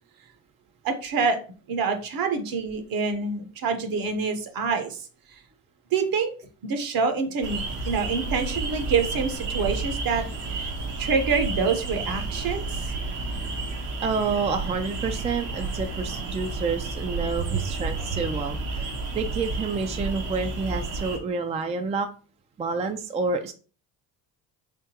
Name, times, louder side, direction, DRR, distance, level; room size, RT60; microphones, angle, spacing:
voice 1, 0.8-1.4 1.7-5.1 5.9-6.3 6.6-10.2 10.5-10.7 11.0-12.8, right 5 dB, 55° right, 7 dB, 1.0 m, -26 dB
sound 1, 7.4-21.2, right 3 dB, 75° right, 1.2 m, -31 dB
voice 2, 14.0-22.1 22.6-23.5, right 4 dB, 15° right, 6 dB, 0.4 m, -29 dB
3.7 x 3.6 x 2.8 m, 0.37 s
supercardioid pair, 90°, 42 cm